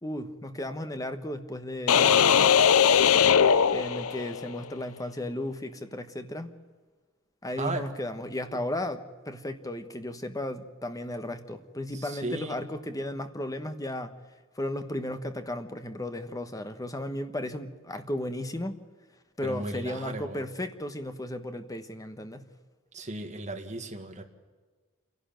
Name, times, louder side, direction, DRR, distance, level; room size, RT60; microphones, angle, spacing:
voice 1, 0.0-2.6 3.7-6.6 7.4-14.1 14.6-18.8 19.4-22.4, left 1 dB, 15° left, 8 dB, 1.2 m, -35 dB
sound 1, 1.9-4.5, left 7 dB, 75° left, 0.6 m, -20 dB
voice 2, 12.0-12.6 19.4-20.4 22.9-24.2, right 2 dB, 35° right, 4 dB, 2.1 m, -35 dB
28.5 x 12.0 x 9.1 m, 1.4 s
head